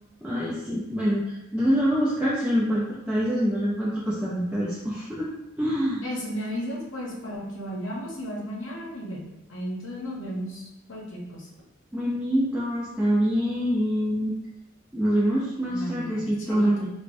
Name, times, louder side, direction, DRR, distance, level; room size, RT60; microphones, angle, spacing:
voice 1, 0.2-5.3 5.6-6.0 11.9-14.3 14.9-16.9, equal, 5° right, -7 dB, 0.4 m, -25 dB
voice 2, 6.0-9.2 9.5-11.4 15.7-16.9, equal, 70° left, -3 dB, 0.8 m, -34 dB
4.5 x 2.1 x 2.5 m, 0.93 s
head